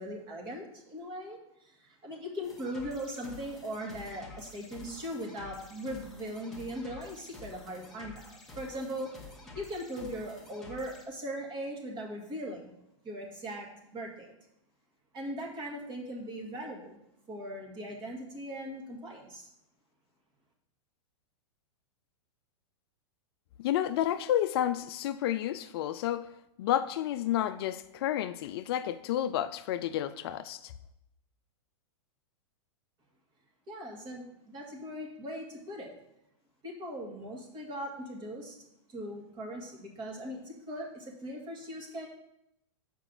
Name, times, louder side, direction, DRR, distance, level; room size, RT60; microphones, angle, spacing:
voice 1, 0.0-9.1 9.6-12.7 13.0-14.3 15.1-17.0 17.3-19.5 33.7-36.0 36.6-38.6 38.9-42.1, equal, 30° right, 1.8 m, -39 dB
sound 1, 2.4-11.0, left 3 dB, ahead, 1.1 m, -50 dB
voice 2, 23.6-26.3 26.6-30.7, left 11 dB, 50° left, 0.4 m, -30 dB
6.7 x 4.8 x 5.9 m
hypercardioid pair, 135°, 16 cm